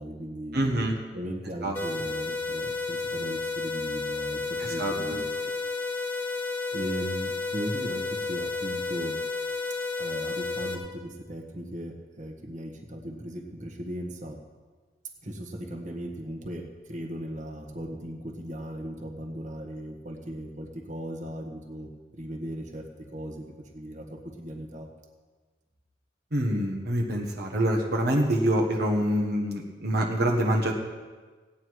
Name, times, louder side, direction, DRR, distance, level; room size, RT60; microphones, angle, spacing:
voice 1, 0.0-5.2 6.7-9.2 10.0-14.4 15.2-22.8 23.1-23.5 23.7-24.9, equal, 45° right, 2 dB, 1.6 m, -37 dB
voice 2, 0.5-1.0 1.6-1.7 4.6-5.2 26.3-30.7, right 1 dB, 65° right, 0 dB, 1.5 m, -26 dB
sound 1, 1.7-10.7, left 3 dB, 10° left, 1.5 m, -32 dB
17.0 x 9.4 x 4.8 m, 1.4 s
head